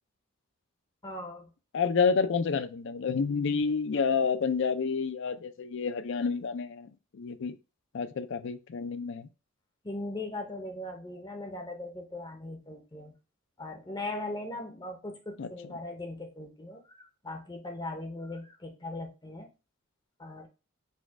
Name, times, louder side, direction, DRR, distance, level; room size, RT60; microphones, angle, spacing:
voice 1, 1.0-1.5 9.8-13.1 13.6-19.5 20.2-20.5, left 2 dB, 20° left, 0.6 m, -39 dB
voice 2, 1.7-7.6 7.9-9.3 15.4-15.7, left 5 dB, 55° left, 0.4 m, -29 dB
4.3 x 2.3 x 4.5 m
head